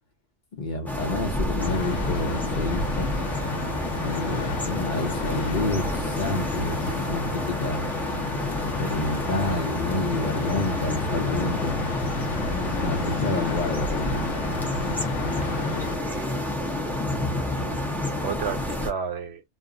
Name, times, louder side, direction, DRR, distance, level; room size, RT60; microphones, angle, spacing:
voice 1, 0.6-3.1 4.0-7.9 8.6-11.8 12.6-14.2, left 2 dB, 45° left, 0.7 m, -29 dB
sound 1, 0.9-18.9, left 1 dB, ahead, 0.5 m, -29 dB
sound 2, 1.6-16.0, left 3 dB, 85° left, 1.0 m, -32 dB
voice 2, 15.4-16.5 17.6-19.4, right 7 dB, 70° right, 0.9 m, -34 dB
2.4 x 2.0 x 3.5 m
omnidirectional pair, 1.2 m